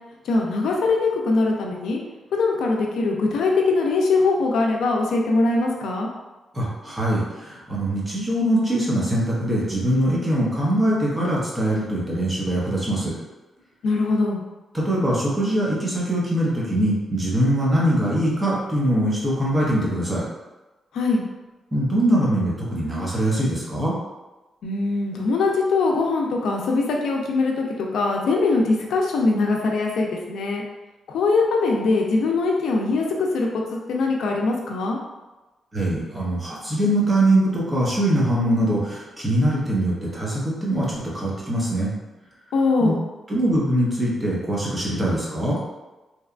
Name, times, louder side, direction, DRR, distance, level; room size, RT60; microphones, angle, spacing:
voice 1, 0.3-2.0 2.3-6.1 13.8-14.4 20.9-21.2 24.6-30.6 31.1-33.5 33.9-35.0 42.5-43.0, left 3 dB, 85° left, 0 dB, 0.4 m, -22 dB
voice 2, 6.5-13.1 14.7-20.2 21.7-23.9 35.7-41.9 42.8-42.9 43.3-45.6, right 1 dB, 15° right, -6 dB, 0.6 m, -22 dB
2.8 x 2.3 x 2.4 m, 1.1 s
wide cardioid pair, 165°, 0 cm